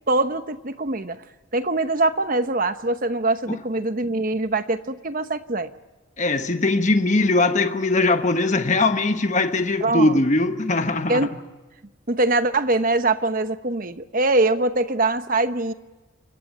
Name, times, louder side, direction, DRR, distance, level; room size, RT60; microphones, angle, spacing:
voice 1, 0.1-1.2 1.5-5.7 9.8-10.2 11.1-11.3 12.1-15.7, right 2 dB, 40° right, 1.0 m, -23 dB
voice 2, 6.2-11.3, left 2 dB, 35° left, 1.2 m, -20 dB
28.5 x 15.5 x 8.9 m
head